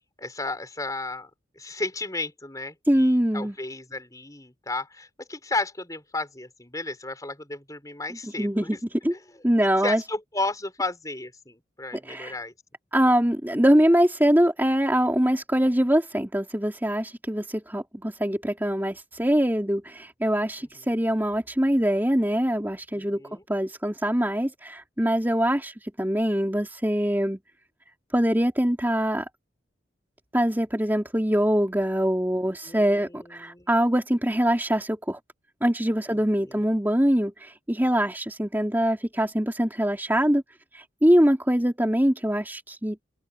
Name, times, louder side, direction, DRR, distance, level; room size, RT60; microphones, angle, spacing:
voice 1, 0.2-1.3 1.5-8.8 9.1-9.2 9.8-12.5 22.9-23.4 32.6-33.7 36.1-36.5, left 2 dB, 20° left, 5.0 m, -33 dB
voice 2, 2.9-3.5 8.4-9.1 9.4-10.0 12.0-12.3 12.9-23.2 23.5-27.4 28.1-29.3 30.3-35.2 35.6-40.4 40.7-43.0, equal, 10° right, 2.9 m, -23 dB
open air
head